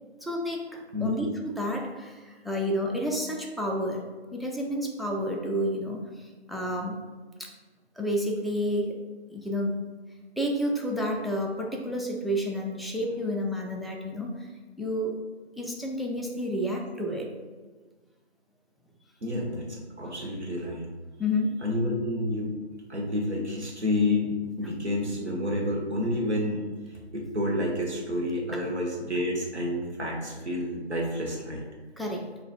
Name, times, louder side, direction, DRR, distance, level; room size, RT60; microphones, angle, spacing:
voice 1, 0.2-4.0 4.3-7.0 7.4-7.5 8.0-9.0 9.3-9.8 10.4-14.5 14.8-15.2 15.6-17.3 21.2-21.6 28.5-28.6 32.0-32.3, equal, ahead, 0 dB, 0.3 m, -30 dB
voice 2, 19.2-20.9 21.6-22.6 22.9-31.6, left 1 dB, 80° right, -2 dB, 1.0 m, -29 dB
3.1 x 2.4 x 3.9 m, 1.3 s
figure-of-eight pair, 180°, 33 cm